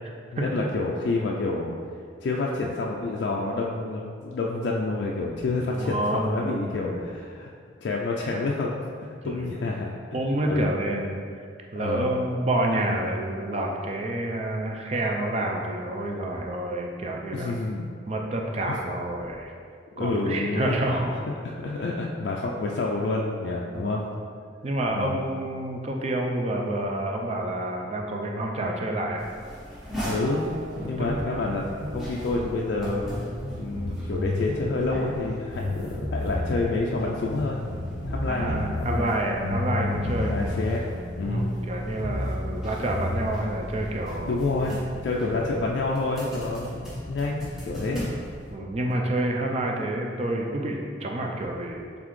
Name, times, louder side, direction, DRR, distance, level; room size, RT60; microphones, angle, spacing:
voice 1, 0.3-1.8 2.2-7.5 7.8-8.7 9.2-9.9 10.5-10.7 11.8-12.1 17.3-17.8 20.0-20.8 21.4-24.0 24.9-25.2 30.0-30.4 30.7-31.7 31.9-33.0 33.5-37.7 38.1-39.1 39.4-39.6 40.2-40.8 41.1-41.5 44.3-48.1, left 3 dB, 60° left, -2 dB, 0.3 m, -28 dB
voice 2, 5.7-7.0 9.2-9.5 10.1-11.2 11.7-17.5 18.1-19.5 20.0-21.2 23.7-23.9 24.6-29.3 31.0-31.1 38.3-40.4 41.2-44.4 45.2-45.3 48.5-51.9, right 1 dB, 35° right, 1 dB, 0.4 m, -28 dB
sound 1, 29.2-48.5, equal, ahead, 0.8 m, -40 dB
sound 2, 30.2-45.7, left 1 dB, 85° right, 1.3 m, -32 dB
4.0 x 3.5 x 3.1 m, 2.2 s
head